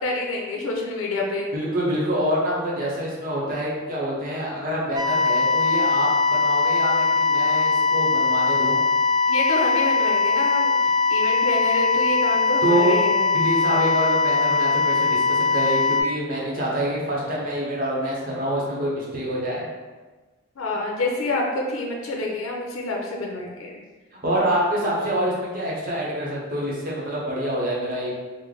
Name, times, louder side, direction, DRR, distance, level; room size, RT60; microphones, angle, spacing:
voice 1, 0.0-1.5 9.3-13.2 20.6-23.8, left 2 dB, 90° left, -1 dB, 0.5 m, -27 dB
voice 2, 1.5-8.8 12.6-13.0 13.3-19.7 24.2-28.1, right 1 dB, 45° right, -5 dB, 0.8 m, -26 dB
sound 1, 5.0-16.0, left 4 dB, 15° right, 0.4 m, -21 dB
3.2 x 2.1 x 3.8 m, 1.3 s
head